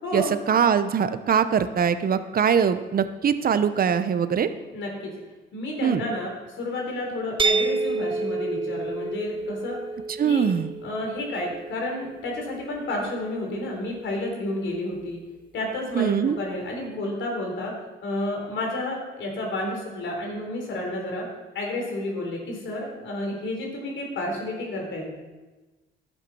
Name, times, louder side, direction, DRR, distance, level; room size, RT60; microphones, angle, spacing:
voice 1, 0.1-4.5 5.8-6.0 10.2-10.7 15.9-16.4, right 7 dB, 45° right, 11 dB, 0.9 m, -22 dB
voice 2, 4.7-5.1 5.5-6.3 6.5-9.8 10.2-10.5 10.8-15.2 15.5-17.7 18.0-21.3 21.5-25.1, left 1 dB, 70° left, 0 dB, 3.8 m, -31 dB
sound 1, 7.4-13.2, right 3 dB, 25° right, 0.5 m, -30 dB
11.5 x 7.9 x 6.3 m, 1.2 s
cardioid pair, 90°, 20 cm